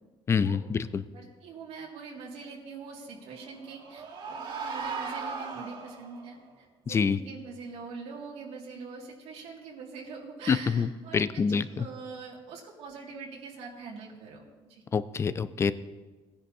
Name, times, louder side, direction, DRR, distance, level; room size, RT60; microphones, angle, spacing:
voice 1, 0.3-0.9 6.9-7.2 10.5-11.8 14.9-15.7, left 5 dB, 25° left, 15 dB, 0.4 m, -26 dB
voice 2, 1.1-11.4 11.7-14.4 14.7-14.8, right 4 dB, 80° right, -2 dB, 2.1 m, -43 dB
sound 1, 3.3-6.3, right 5 dB, 60° right, 2.2 m, -37 dB
18.5 x 10.0 x 2.7 m, 1.3 s
cardioid pair, 145°, 11 cm